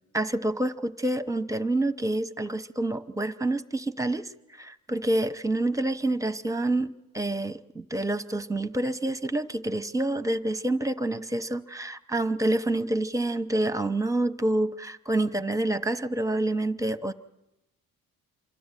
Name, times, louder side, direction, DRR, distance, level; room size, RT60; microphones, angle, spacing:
voice 1, 0.1-17.1, right 2 dB, 10° right, 11 dB, 0.9 m, -28 dB
26.5 x 12.5 x 9.1 m, 0.97 s
cardioid pair, 90°, 30 cm